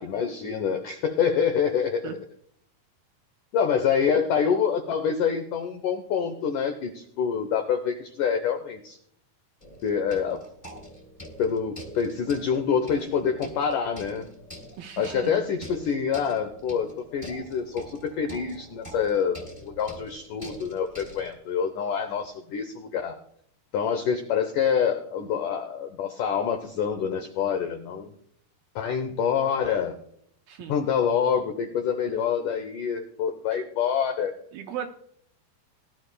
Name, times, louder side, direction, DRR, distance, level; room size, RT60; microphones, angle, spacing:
voice 1, 0.0-2.2 3.5-9.0 9.8-10.4 11.4-14.3 15.0-23.2 23.7-28.1 28.7-29.9 30.7-34.3, left 7 dB, 85° left, 6 dB, 1.8 m, -26 dB
sound 1, 9.6-21.3, equal, 20° left, 1.8 m, -45 dB
voice 2, 14.8-15.4 30.5-30.8 34.5-34.9, right 10 dB, 80° right, 5 dB, 2.2 m, -36 dB
20.0 x 11.5 x 2.2 m, 0.66 s
omnidirectional pair, 4.8 m